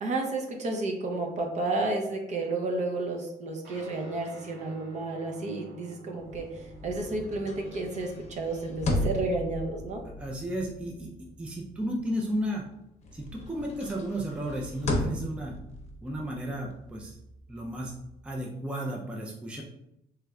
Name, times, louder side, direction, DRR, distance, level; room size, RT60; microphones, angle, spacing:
voice 1, 0.0-10.0, right 2 dB, 45° right, 2 dB, 0.7 m, -31 dB
Guitar, 3.6-13.3, right 1 dB, 75° right, 1.4 m, -51 dB
sound 1, 6.2-12.7 13.0-18.4, left 1 dB, 40° left, 0.8 m, -36 dB
voice 2, 10.2-11.1 11.4-12.6 13.1-15.5 16.0-17.2 17.5-17.9 18.2-19.6, equal, 5° right, -1 dB, 0.4 m, -33 dB
3.2 x 2.9 x 2.3 m, 0.83 s
cardioid pair, 110°, 17 cm